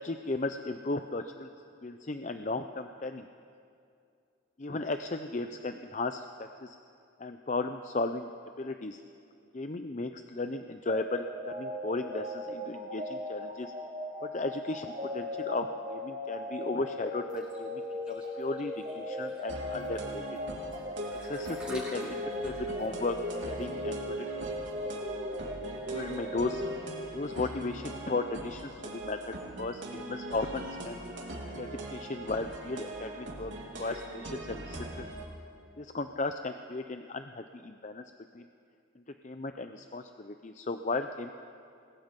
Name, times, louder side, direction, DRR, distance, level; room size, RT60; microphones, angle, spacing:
voice 1, 0.0-1.5 1.8-3.3 4.6-6.8 7.2-8.3 8.6-9.0 9.5-13.7 14.2-17.8 18.1-20.4 21.1-23.2 23.5-24.6 25.9-26.6 27.1-31.0 31.5-33.5 33.8-35.1 35.8-38.0 38.3-38.5 39.2-41.3, left 3 dB, 35° left, 8 dB, 0.6 m, -35 dB
sound 1, 10.9-27.5, left 1 dB, 45° right, 5.4 m, -38 dB
sound 2, 17.3-25.0, right 1 dB, 5° right, 7.5 m, -51 dB
sound 3, 19.5-35.2, right 1 dB, 70° right, 3.5 m, -42 dB
28.0 x 20.5 x 5.3 m, 2.5 s
head